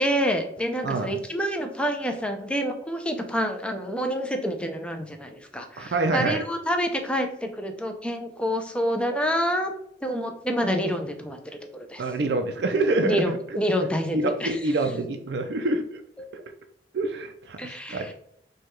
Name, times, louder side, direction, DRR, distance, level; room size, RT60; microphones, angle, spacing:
voice 1, 0.0-9.7 10.0-11.4 11.7-12.0 13.0-14.6 17.6-18.1, equal, 5° left, 4 dB, 0.5 m, -27 dB
voice 2, 5.8-6.4 12.0-13.4 14.1-16.0 16.3-16.4 16.9-18.1, right 2 dB, 65° right, 6 dB, 0.4 m, -26 dB
4.7 x 2.3 x 4.4 m, 0.73 s
head